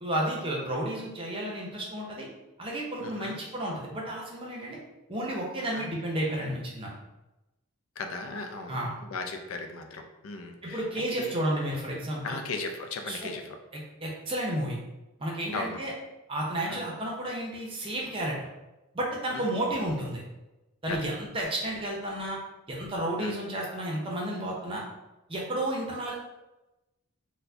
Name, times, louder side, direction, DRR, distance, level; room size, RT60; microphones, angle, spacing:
voice 1, 0.0-2.3 2.6-4.8 5.1-6.9 8.7-8.9 10.6-12.4 13.1-13.3 13.7-14.8 15.2-15.9 16.3-18.5 18.9-20.2 20.8-22.4 22.7-24.8 25.3-26.2, right 1 dB, 25° right, -3 dB, 0.6 m, -32 dB
voice 2, 3.0-3.4 5.7-5.9 8.0-11.4 12.2-13.5 15.5-15.8 16.7-16.8 19.3-19.5 20.9-21.1 23.2-23.4, left 3 dB, 75° left, 5 dB, 0.4 m, -37 dB
4.3 x 2.1 x 2.7 m, 1.0 s
head